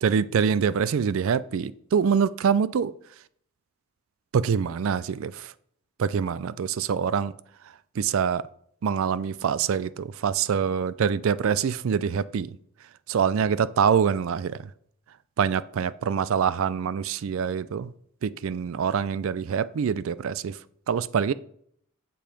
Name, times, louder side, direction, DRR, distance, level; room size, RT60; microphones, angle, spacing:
voice 1, 0.0-2.9 4.3-5.5 6.0-7.3 8.0-8.4 8.8-12.5 13.1-14.6 15.4-17.9 18.2-20.6 20.9-21.3, right 7 dB, 65° right, 0.4 m, -25 dB
7.5 x 6.9 x 5.1 m
head